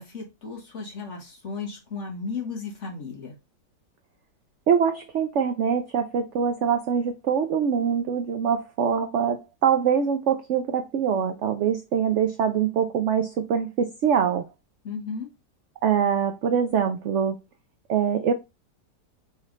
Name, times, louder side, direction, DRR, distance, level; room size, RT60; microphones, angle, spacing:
voice 1, 0.0-3.4 14.8-15.3, left 4 dB, 45° left, 1.5 m, -35 dB
voice 2, 4.7-14.4 15.8-17.3 17.9-18.3, right 7 dB, 75° right, 0.7 m, -24 dB
4.2 x 3.2 x 3.7 m
omnidirectional pair, 1.8 m